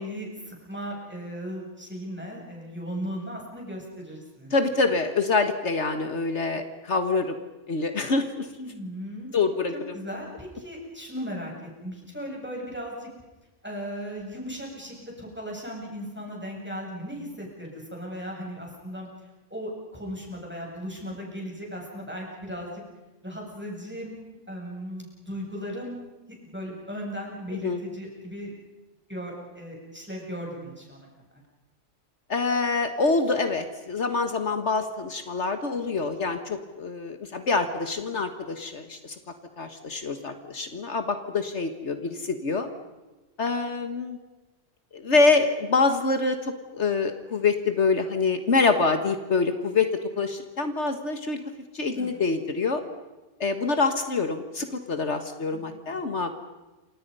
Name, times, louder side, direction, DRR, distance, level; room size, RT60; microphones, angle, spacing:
voice 1, 0.0-4.5 8.6-9.3 9.7-11.5 11.8-13.1 13.6-19.1 19.5-22.8 23.2-24.2 24.5-26.0 26.4-28.5 29.1-31.1 51.9-52.2 55.5-56.1, equal, 10° right, -2 dB, 7.9 m, -37 dB
voice 2, 4.5-7.4 7.7-8.5 9.3-10.0 27.5-27.8 32.3-39.2 39.6-42.7 43.4-44.2 44.9-51.4 51.7-52.8 53.4-56.3, left 4 dB, 65° left, 7 dB, 1.8 m, -26 dB
28.5 x 26.0 x 5.6 m, 1.1 s
omnidirectional pair, 1.3 m